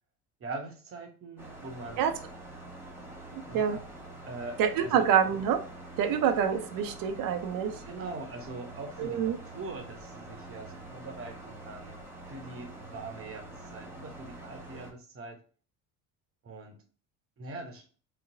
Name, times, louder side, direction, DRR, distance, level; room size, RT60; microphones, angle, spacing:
voice 1, 0.4-2.0 3.5-3.9 4.2-5.1 6.3-6.4 7.8-15.4 16.4-16.8 17.4-17.9, right 3 dB, 35° right, 3 dB, 0.9 m, -42 dB
sound 1, 1.4-14.9, right 2 dB, 5° right, 1.0 m, -46 dB
voice 2, 4.6-5.6 6.0-7.7 9.0-9.4, right 8 dB, 60° right, 6 dB, 0.7 m, -26 dB
3.9 x 2.0 x 2.6 m, 0.39 s
hypercardioid pair, 75°, 39 cm